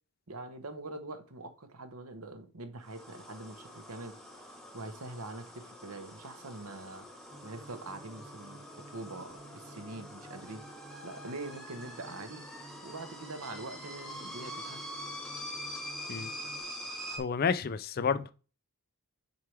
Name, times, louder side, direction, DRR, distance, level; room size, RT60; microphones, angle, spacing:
voice 1, 0.3-4.2 4.7-7.1 7.4-8.6 8.9-10.6 11.0-12.4 12.8-14.9, right 2 dB, 75° right, 1.0 m, -44 dB
sound 1, 2.8-17.2, left 1 dB, ahead, 1.0 m, -45 dB
sound 2, 7.3-16.6, right 2 dB, 25° right, 1.6 m, -53 dB
voice 2, 17.1-18.3, left 6 dB, 40° left, 0.4 m, -30 dB
6.8 x 4.6 x 3.3 m
head